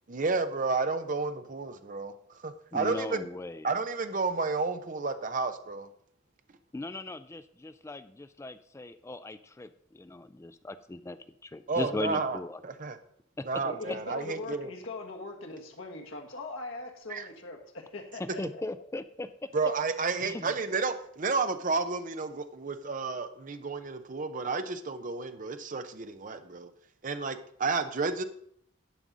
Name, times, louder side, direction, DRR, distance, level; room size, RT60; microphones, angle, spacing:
voice 1, 0.1-3.3 3.6-5.9 11.7-12.4 12.6-13.0 13.4-14.7 17.1-17.3 19.5-26.7 27.0-28.2, right 4 dB, 40° right, 9 dB, 0.6 m, -31 dB
voice 2, 2.7-3.7 6.7-11.2 11.4-12.6 13.4-13.5 13.9-14.0 18.2-19.5 20.2-20.5, left 2 dB, 15° left, 12 dB, 0.3 m, -38 dB
voice 3, 13.6-18.6, left 2 dB, 80° left, 1 dB, 1.6 m, -41 dB
11.0 x 5.3 x 6.1 m, 0.65 s
head